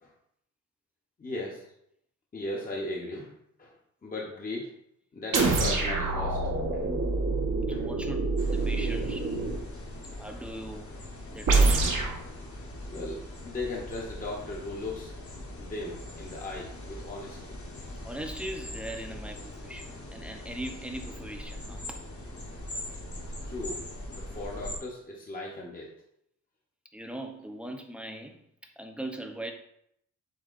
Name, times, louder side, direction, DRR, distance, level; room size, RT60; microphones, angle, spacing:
voice 1, 1.2-1.7 2.3-3.7 4.0-4.7 5.1-6.4 6.7-6.8 7.7-7.9 10.3-10.4 12.9-15.1 15.5-17.6 23.5-23.8 24.1-25.9, left 2 dB, 25° left, -3 dB, 0.8 m, -37 dB
sound 1, 5.3-9.6 11.5-12.2, right 3 dB, 75° right, 1.0 m, -26 dB
voice 2, 7.7-9.5 10.2-10.9 11.3-11.9 18.0-22.0 26.9-28.4 28.8-29.5, right 1 dB, 5° right, 3 dB, 0.5 m, -40 dB
sound 2, 8.4-24.8, left 1 dB, 45° left, 1.0 m, -41 dB
7.5 x 2.7 x 2.4 m, 0.73 s
wide cardioid pair, 125°, 32 cm